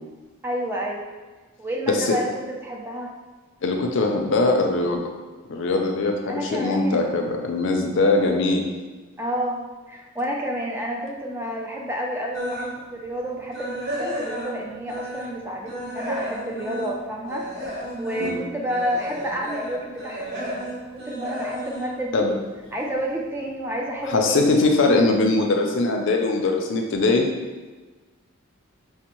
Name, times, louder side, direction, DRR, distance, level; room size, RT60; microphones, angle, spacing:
voice 1, 0.4-1.1 1.6-3.1 6.3-7.1 9.2-9.6 9.9-22.3 22.7-24.7, equal, 10° right, -2 dB, 0.3 m, -30 dB
voice 2, 3.6-5.0 5.5-8.6 18.2-18.4 22.1-22.3 24.0-27.3, left 3 dB, 60° left, 3 dB, 0.4 m, -21 dB
sound 1, 12.3-12.8 13.2-15.4 15.7-22.9 23.2-23.5 24.0-24.1 24.5-24.6, equal, 60° right, 1.0 m, -32 dB
5.1 x 2.0 x 2.9 m, 1.3 s
head